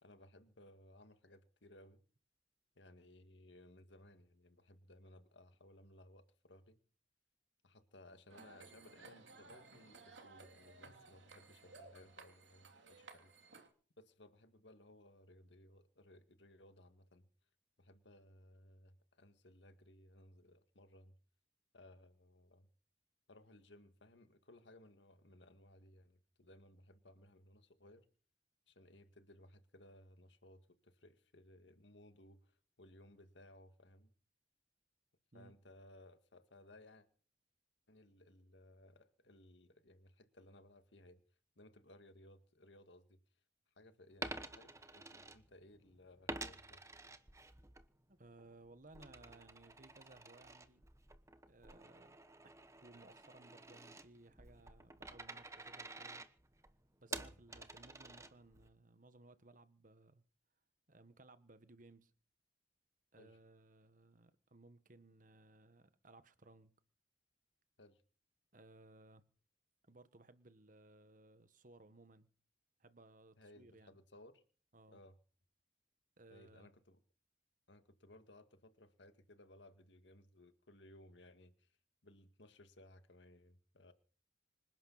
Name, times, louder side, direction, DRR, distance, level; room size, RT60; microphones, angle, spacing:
voice 1, 0.0-2.0 2.8-6.8 7.6-13.3 14.0-17.3 17.8-21.2 21.7-22.7 23.3-28.1 28.7-34.1 35.3-37.1 37.9-41.2 41.6-43.2 43.8-46.8 57.1-57.6 63.2-63.4 67.8-68.0 73.4-74.4 74.9-75.2 76.3-77.0 77.7-81.8 82.0-83.9, left 1 dB, 75° left, 2.0 m, -61 dB
sound 1, 8.3-13.7, right 3 dB, 85° right, 3.2 m, -58 dB
Coin (dropping), 44.1-45.8 46.3-47.9 48.2-58.7, right 3 dB, 15° right, 1.1 m, -50 dB
voice 2, 48.1-50.8 51.5-52.2 52.4-56.2 57.0-60.2 60.9-62.1 63.1-66.7 68.5-69.2 69.8-72.3 72.8-74.0 74.7-75.0 76.2-76.7, right 2 dB, 45° right, 1.4 m, -61 dB
26.0 x 11.0 x 4.1 m
head